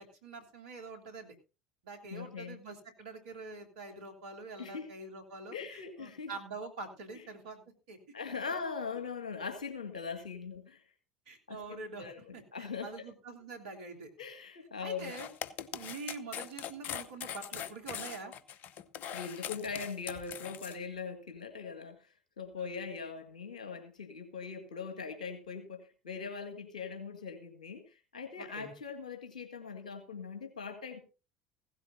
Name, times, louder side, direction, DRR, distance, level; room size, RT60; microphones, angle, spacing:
voice 1, 0.0-1.3 1.8-8.0 11.3-12.1 12.3-14.1 14.8-15.3 15.7-18.3 22.6-22.9 28.4-28.7, right 3 dB, 70° right, 3.1 m, -45 dB
voice 2, 2.1-2.6 4.6-4.9 5.5-6.3 8.1-10.8 11.5-13.1 14.2-15.2 19.1-31.0, left 5 dB, 80° left, 1.9 m, -41 dB
sound 1, 15.0-20.8, left 9 dB, 50° left, 0.9 m, -41 dB
16.5 x 15.0 x 2.6 m
figure-of-eight pair, 65°, 4 cm